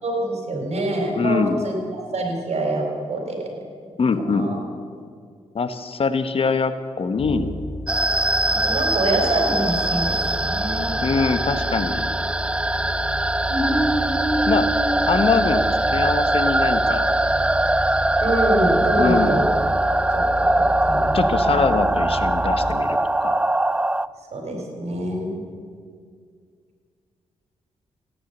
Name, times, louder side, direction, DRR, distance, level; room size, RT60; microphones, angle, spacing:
voice 1, 0.0-3.5 4.3-4.6 8.5-10.2 10.4-11.0 13.5-15.0 18.2-19.4 19.8-21.2 21.5-21.7 24.3-25.4, right 1 dB, 60° right, 2 dB, 4.4 m, -25 dB
voice 2, 1.2-1.6 4.0-4.5 5.5-7.5 11.0-12.1 14.5-14.7 15.0-17.1 19.0-19.4 21.1-23.4, left 4 dB, 50° left, 10 dB, 1.0 m, -23 dB
sound 1, 7.2-22.8, left 1 dB, 20° left, 1.7 m, -32 dB
sound 2, 7.9-24.1, right 2 dB, 10° right, 0.3 m, -22 dB
16.0 x 10.0 x 8.1 m, 2.1 s
cardioid pair, 75°, 12 cm